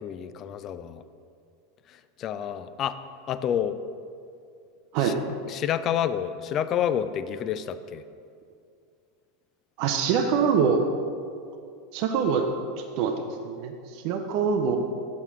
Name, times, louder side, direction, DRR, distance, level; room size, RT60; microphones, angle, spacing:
voice 1, 0.0-1.0 2.2-3.0 3.3-3.8 5.0-5.2 5.5-8.0, left 9 dB, 40° left, 12 dB, 0.3 m, -29 dB
voice 2, 9.8-10.8 11.9-12.5 13.0-13.2 13.4-14.8, right 6 dB, 55° right, 4 dB, 0.5 m, -24 dB
7.3 x 4.1 x 4.8 m, 2.4 s
hypercardioid pair, 85°, 0 cm